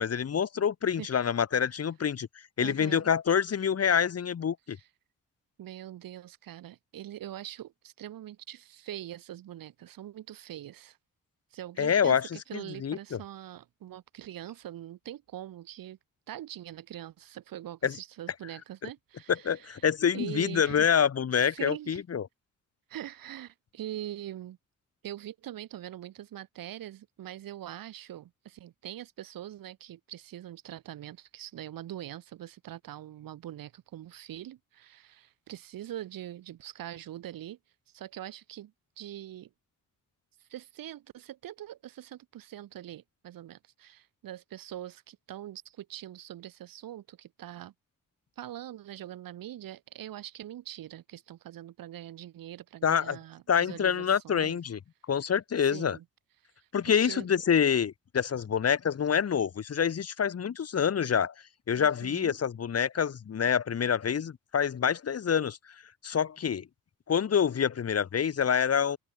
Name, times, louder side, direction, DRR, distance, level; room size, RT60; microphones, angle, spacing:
voice 1, 0.0-2.3 2.6-4.8 11.8-13.2 17.8-18.0 19.3-22.3 52.8-53.2 53.5-54.8 55.1-56.0 56.7-61.3 61.7-65.6 66.0-66.7 67.1-69.0, left 7 dB, 45° left, 1.4 m, -27 dB
voice 2, 2.6-3.1 4.8-4.9 5.6-11.0 11.5-16.0 16.3-19.8 20.1-20.9 21.3-22.0 22.9-24.6 25.0-37.6 37.9-39.5 40.4-47.7 48.4-54.6 55.6-56.0 56.6-57.3 61.7-62.4, right 12 dB, 90° right, 5.5 m, -43 dB
cardioid pair, 85°, 33 cm